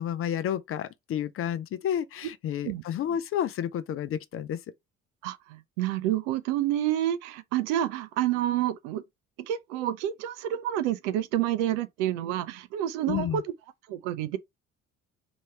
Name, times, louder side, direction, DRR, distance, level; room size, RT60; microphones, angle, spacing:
voice 1, 0.0-4.6 13.1-13.4, left 10 dB, 35° left, 0.5 m, -30 dB
voice 2, 5.2-9.0 9.5-13.4 13.9-14.4, right 12 dB, 60° right, 0.7 m, -28 dB
4.5 x 2.9 x 3.3 m
figure-of-eight pair, 50°, 39 cm